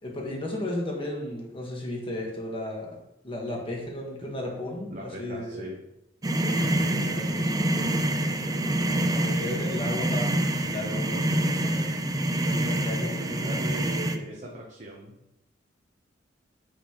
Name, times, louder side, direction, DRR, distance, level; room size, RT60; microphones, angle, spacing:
voice 1, 0.0-3.0 3.2-5.6 6.4-13.5, left 1 dB, 30° left, -1 dB, 1.5 m, -35 dB
voice 2, 4.9-5.8 12.4-12.6 13.0-15.2, right 1 dB, 40° right, -2 dB, 0.9 m, -40 dB
sound 1, 6.2-14.2, right 1 dB, 20° right, 0.4 m, -26 dB
9.4 x 4.1 x 3.0 m, 0.86 s
head